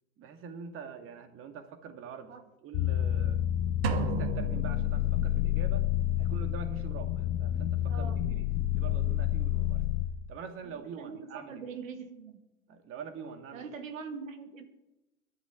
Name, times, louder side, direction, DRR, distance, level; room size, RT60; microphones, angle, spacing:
voice 1, 0.2-2.3 2.6-3.4 3.9-5.9 6.2-9.8 10.3-11.6 12.7-13.7, right 6 dB, 30° right, 7 dB, 2.1 m, -45 dB
sound 1, 2.7-10.1, left 12 dB, 35° left, 1.1 m, -29 dB
sound 2, 3.8-5.6, right 6 dB, 50° right, 1.7 m, -34 dB
voice 2, 7.9-8.2 10.6-12.4 13.5-14.7, right 5 dB, 70° right, 8 dB, 2.3 m, -43 dB
22.0 x 11.5 x 3.8 m, 0.98 s
hypercardioid pair, 115°, 41 cm